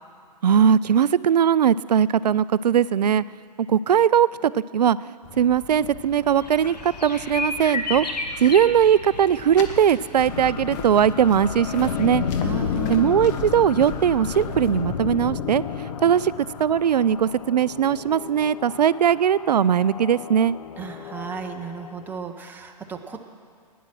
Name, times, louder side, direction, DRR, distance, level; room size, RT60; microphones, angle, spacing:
voice 1, 0.4-3.2 3.6-8.1 8.4-12.2 12.9-16.3 16.6-20.6, right 8 dB, 75° right, 18 dB, 0.4 m, -20 dB
sound 1, 5.2-14.8, left 5 dB, 35° left, 1.3 m, -39 dB
sound 2, 6.4-12.2, left 3 dB, 80° left, 1.5 m, -33 dB
sound 3, 10.3-22.2, left 7 dB, 60° left, 0.9 m, -32 dB
voice 2, 12.4-13.2 20.8-23.2, right 5 dB, 10° right, 3 dB, 0.9 m, -34 dB
17.0 x 10.0 x 6.1 m, 2.1 s
figure-of-eight pair, 120°, 21 cm